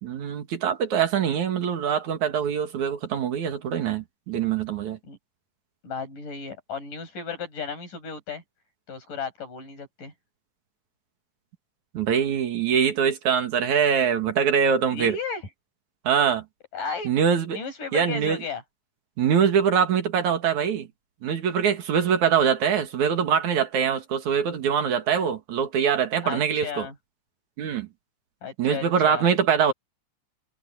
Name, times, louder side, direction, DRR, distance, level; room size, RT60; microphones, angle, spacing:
voice 1, 0.0-5.0 11.9-15.2 16.0-16.4 17.0-17.6 17.9-18.4 19.2-20.9 21.2-26.9 27.6-27.9 28.6-29.7, right 7 dB, 70° right, 3.2 m, -23 dB
voice 2, 5.8-8.4 8.9-10.1 14.9-15.4 16.7-17.1 17.5-18.6 26.2-27.0 28.4-29.3, left 5 dB, 90° left, 9.6 m, -34 dB
omnidirectional pair, 3.6 m